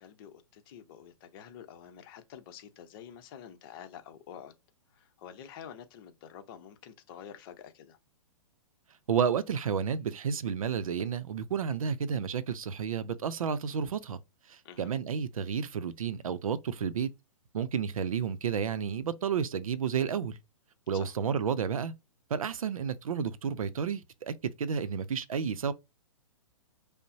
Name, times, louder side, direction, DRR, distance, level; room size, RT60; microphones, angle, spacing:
voice 1, 0.0-4.5 4.9-8.0 14.6-14.9 20.9-21.1, left 9 dB, 40° left, 0.8 m, -48 dB
voice 2, 9.1-14.2 14.5-17.1 17.5-20.4 20.9-21.9 22.3-25.7, right 7 dB, 80° right, 0.6 m, -31 dB
5.3 x 2.1 x 2.7 m
hypercardioid pair, 130°, 18 cm